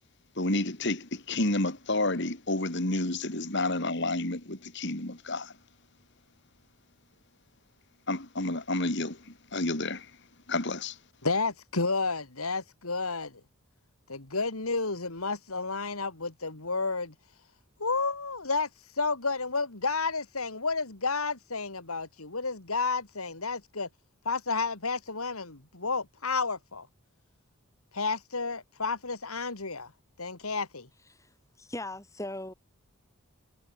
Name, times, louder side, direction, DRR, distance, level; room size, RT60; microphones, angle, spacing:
voice 1, 0.4-5.5 8.1-9.2 9.5-10.1 10.5-11.0, left 2 dB, 55° left, 2.8 m, -30 dB
voice 2, 11.2-13.4 14.1-17.1 17.8-18.7 19.0-23.9 24.2-26.9 27.9-29.9 30.2-30.9, left 4 dB, 80° left, 3.1 m, -31 dB
voice 3, 31.1-32.5, left 1 dB, 15° left, 5.4 m, -39 dB
head